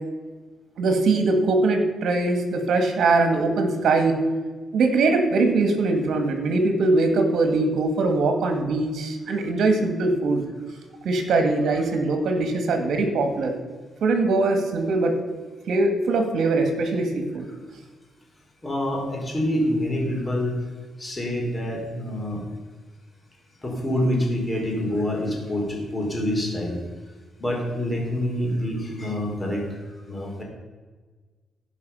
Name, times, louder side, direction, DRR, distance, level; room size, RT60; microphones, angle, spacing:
voice 1, 0.8-4.2 4.7-10.4 11.0-13.5 14.0-15.1 15.7-17.4, right 3 dB, 70° right, 5 dB, 2.0 m, -22 dB
voice 2, 18.6-20.6 21.0-22.4 23.6-26.8 27.4-29.6 30.1-30.4, left 1 dB, 25° left, 0 dB, 3.8 m, -26 dB
16.0 x 5.6 x 5.6 m, 1.4 s
cardioid pair, 90°, 0 cm